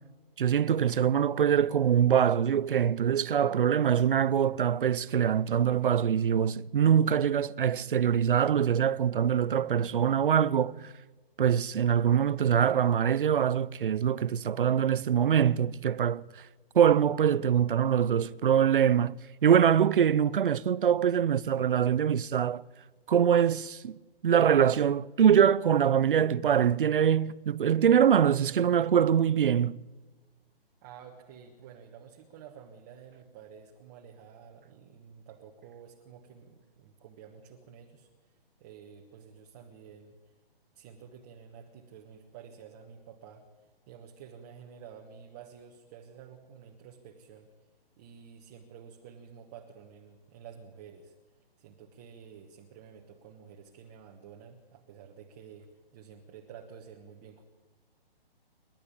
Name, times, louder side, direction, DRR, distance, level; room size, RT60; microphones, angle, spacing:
voice 1, 0.4-10.9 11.4-16.2 16.7-19.2 19.4-22.6 23.1-24.0 24.2-29.8, right 8 dB, 60° right, 0.7 m, -24 dB
voice 2, 30.8-40.3 40.7-47.5 48.0-57.4, right 7 dB, 20° right, 1.2 m, -51 dB
29.5 x 12.0 x 8.6 m
hypercardioid pair, 160°, 30 cm